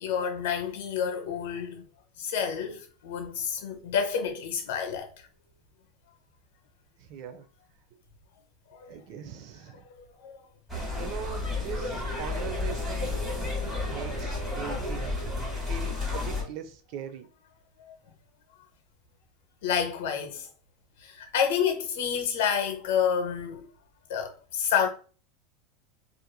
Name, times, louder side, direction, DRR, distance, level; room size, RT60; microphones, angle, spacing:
voice 1, 0.0-1.8 2.2-5.1 8.8-8.9 10.2-10.4 19.6-20.5 21.0-23.7 24.1-24.9, left 7 dB, 80° left, 0.7 m, -29 dB
voice 2, 7.0-7.5 8.9-9.9 11.0-13.2 13.9-15.2 15.6-17.3, right 8 dB, 55° right, 0.4 m, -41 dB
sound 1, 10.7-16.4, left 2 dB, 5° right, 1.2 m, -31 dB
2.9 x 2.4 x 2.2 m
supercardioid pair, 140°, 0 cm